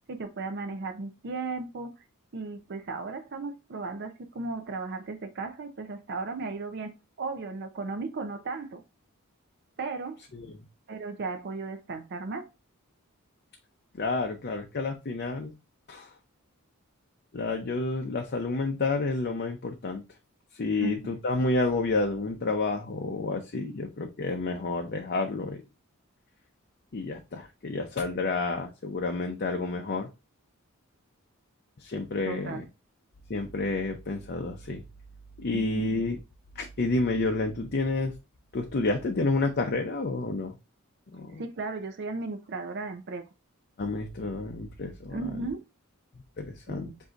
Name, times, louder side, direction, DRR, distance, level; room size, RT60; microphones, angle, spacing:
voice 1, 0.1-1.9 2.3-6.9 7.2-8.8 9.8-10.2 10.9-12.4 20.8-21.0 32.3-32.6 35.5-35.9 41.4-43.3 45.1-45.6 46.7-47.0, right 3 dB, 50° right, 0.5 m, -35 dB
voice 2, 13.9-15.5 15.9-16.1 17.3-20.0 20.5-25.6 26.9-30.1 31.8-32.6 33.3-34.8 35.4-36.2 36.6-38.1 38.5-40.5 41.1-41.4 43.8-45.3 46.4-46.9, left 3 dB, 45° left, 0.6 m, -30 dB
7.8 x 2.7 x 2.4 m
head